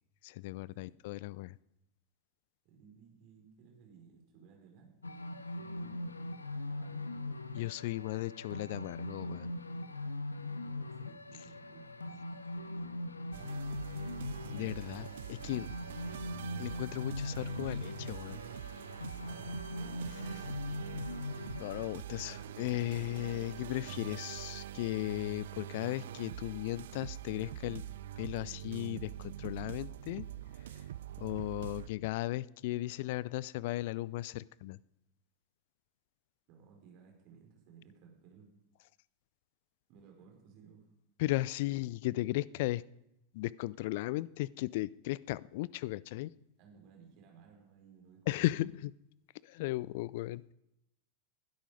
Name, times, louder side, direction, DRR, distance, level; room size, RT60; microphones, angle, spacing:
voice 1, 0.2-1.6 7.5-9.5 14.5-15.7 16.6-18.4 21.6-27.8 28.2-30.3 30.8-30.9 31.2-34.8 41.2-42.8 43.3-46.3 48.3-48.9 49.4-50.4, left 17 dB, 50° left, 22 dB, 0.5 m, -36 dB
voice 2, 2.6-6.3 6.6-7.1 10.6-13.0 20.0-20.8 36.5-38.5 39.9-40.9 46.6-48.7, right 6 dB, 40° right, 1 dB, 4.9 m, -59 dB
sound 1, 5.0-21.9, left 2 dB, 80° left, 1.0 m, -41 dB
sound 2, 13.3-31.9, right 12 dB, 60° right, 0.7 m, -44 dB
20.5 x 12.5 x 5.2 m, 0.84 s
figure-of-eight pair, 90°, 0 cm